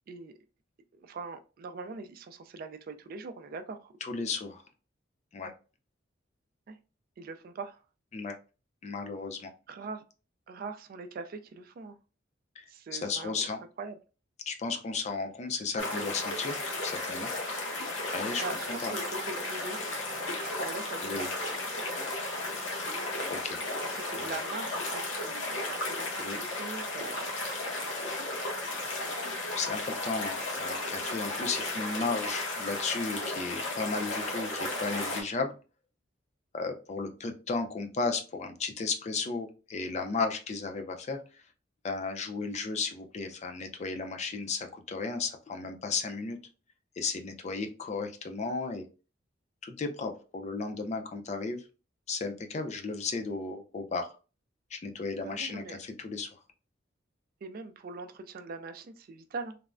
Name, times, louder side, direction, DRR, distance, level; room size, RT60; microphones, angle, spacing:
voice 1, 1.0-3.9 6.7-6.8 7.2-7.8 9.7-10.0 10.5-11.9 12.7-13.5 13.8-14.0 18.4-19.8 20.2-21.3 23.8-27.3 27.6-27.7 36.6-36.7 55.2-55.8 57.4-59.6, right 4 dB, 50° right, 8 dB, 0.3 m, -42 dB
voice 2, 4.0-4.6 5.3-5.5 8.1-8.4 8.8-9.5 12.6-12.7 12.9-13.6 14.5-16.6 16.8-17.3 18.1-18.9 21.0-21.3 23.3-23.6 24.1-24.3 26.2-26.4 29.6-35.5 36.5-41.4 41.8-46.4 47.0-48.9 49.6-51.6 52.1-54.1 54.7-56.4, left 4 dB, 35° left, 5 dB, 0.4 m, -34 dB
sound 1, 15.8-35.2, left 2 dB, 80° left, 0.9 m, -34 dB
3.3 x 2.0 x 2.4 m, 0.33 s
head